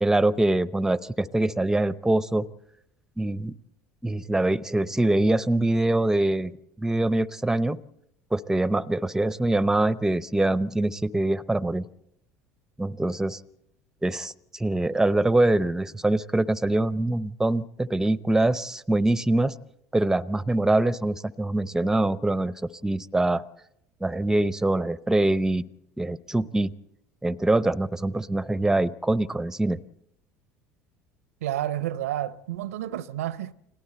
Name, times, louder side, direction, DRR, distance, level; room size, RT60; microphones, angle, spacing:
voice 1, 0.0-2.5 3.2-3.5 4.0-7.8 8.3-11.8 12.8-13.4 14.0-19.5 19.9-23.4 24.0-25.6 26.0-26.7 27.2-29.8, right 2 dB, 5° right, 0.7 m, -24 dB
voice 2, 31.4-33.5, right 12 dB, 75° right, 0.7 m, -30 dB
30.0 x 20.5 x 4.3 m
hypercardioid pair, 70°, 8 cm